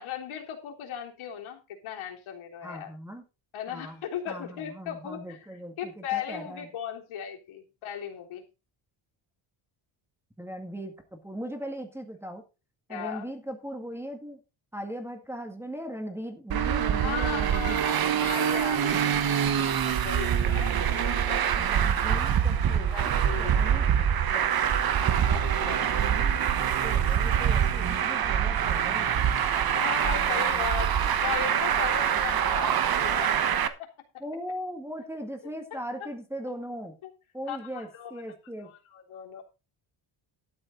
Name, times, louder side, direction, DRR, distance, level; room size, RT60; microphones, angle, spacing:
voice 1, 0.0-2.9 3.5-8.5 12.9-13.3 17.0-21.5 22.8-24.1 25.3-25.9 29.7-33.9 35.7-35.8 37.0-37.1 37.5-39.4, left 9 dB, 75° left, 1 dB, 3.6 m, -37 dB
voice 2, 2.6-3.2 3.7-4.0 4.3-6.7 10.4-10.9 11.2-12.4 12.9-14.4 14.7-18.3 20.3-20.4 21.5-22.9 23.4-24.5 25.8-26.3 26.8-29.1 30.1-30.7 32.1-32.4 34.2-36.9 37.3-38.7, equal, 5° right, 5 dB, 1.9 m, -39 dB
Traffic noise roadway noise, 16.5-33.7, right 9 dB, 45° right, 1.3 m, -25 dB
12.5 x 8.7 x 4.0 m, 0.29 s
cardioid pair, 160°, 50 cm